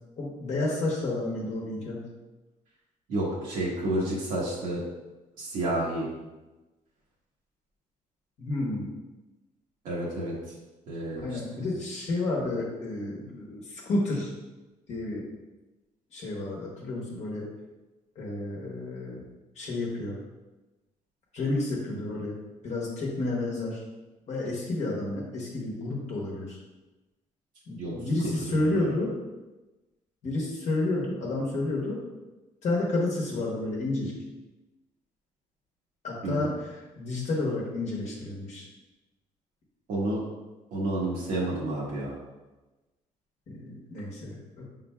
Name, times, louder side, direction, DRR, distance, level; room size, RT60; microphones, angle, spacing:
voice 1, 0.2-2.0 8.4-8.9 11.2-14.3 14.9-15.2 16.1-17.4 18.2-19.2 19.5-20.2 21.3-22.3 22.6-23.8 24.3-26.6 27.7-29.2 30.2-32.0 32.6-34.1 36.0-38.6 43.5-44.6, left 2 dB, 55° left, -3 dB, 1.0 m, -30 dB
voice 2, 3.1-4.8 5.4-6.1 9.8-10.5 10.9-11.7 27.8-27.9 28.4-28.9 36.2-36.5 39.9-40.2 40.7-42.1, right 1 dB, 80° right, -6 dB, 1.2 m, -30 dB
5.5 x 3.8 x 2.3 m, 1.1 s
cardioid pair, 140°, 14 cm